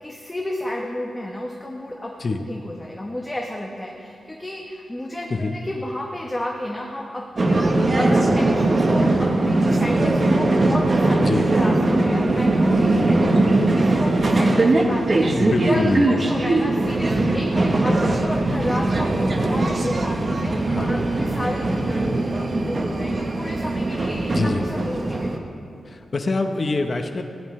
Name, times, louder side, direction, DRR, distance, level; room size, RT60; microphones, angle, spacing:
voice 1, 0.0-2.1 2.5-11.8 12.0-25.3, left 1 dB, 10° left, 0 dB, 1.0 m, -32 dB
sound 1, 7.4-25.4, right 2 dB, 35° right, 1.1 m, -20 dB
voice 2, 11.2-11.5 15.2-16.1 20.6-21.0 24.3-24.6 25.9-27.2, left 3 dB, 35° left, 5 dB, 0.9 m, -25 dB
19.5 x 16.5 x 3.2 m, 2.5 s
wide cardioid pair, 160°, 0 cm